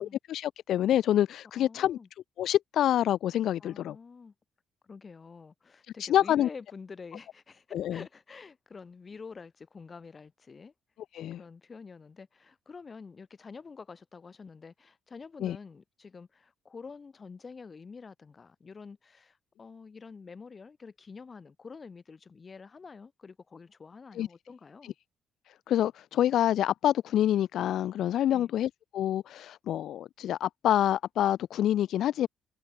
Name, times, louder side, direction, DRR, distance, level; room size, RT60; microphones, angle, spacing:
voice 1, 0.0-2.0 2.4-3.9 6.0-6.5 7.7-8.0 11.1-11.4 15.4-15.6 24.2-24.3 25.7-32.3, left 11 dB, 75° left, 1.2 m, -27 dB
voice 2, 1.5-2.1 3.6-4.3 4.8-10.7 11.4-24.9 28.3-28.5, left 5 dB, 35° left, 6.0 m, -47 dB
cardioid pair, 90°, 0 cm